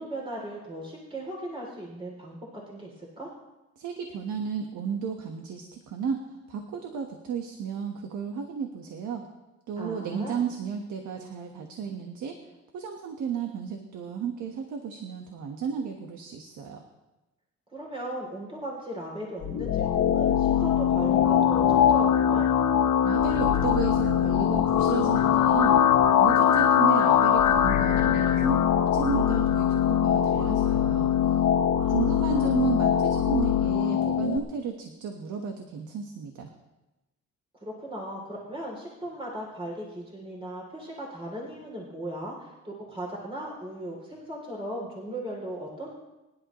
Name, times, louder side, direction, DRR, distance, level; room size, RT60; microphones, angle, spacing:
voice 1, 0.0-3.3 9.8-10.4 17.7-22.5 24.8-25.0 31.8-32.6 37.6-45.9, right 1 dB, 20° right, -2 dB, 3.1 m, -37 dB
voice 2, 3.8-9.2 9.7-12.4 12.7-16.8 23.0-25.8 26.2-28.6 28.9-31.1 31.9-36.5, right 7 dB, 75° right, 4 dB, 1.4 m, -33 dB
sound 1, 19.4-34.4, left 9 dB, 75° left, 1.3 m, -22 dB
24.0 x 11.0 x 3.1 m, 1.0 s
cardioid pair, 90°, 30 cm